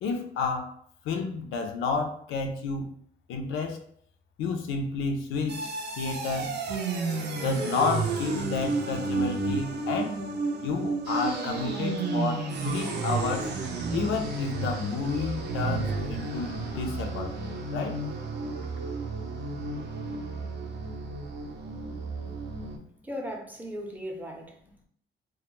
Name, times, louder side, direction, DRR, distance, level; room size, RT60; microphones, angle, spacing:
voice 1, 0.0-0.7 1.0-2.9 3.3-3.8 4.4-5.7 6.0-6.6 7.4-10.2 10.6-13.5 13.9-18.0, left 4 dB, 90° left, 0.5 m, -31 dB
sound 1, 5.5-22.8, right 3 dB, 60° right, 0.5 m, -32 dB
voice 2, 23.0-24.9, equal, 10° right, 0.6 m, -38 dB
2.2 x 2.1 x 2.9 m
cardioid pair, 90°, 20 cm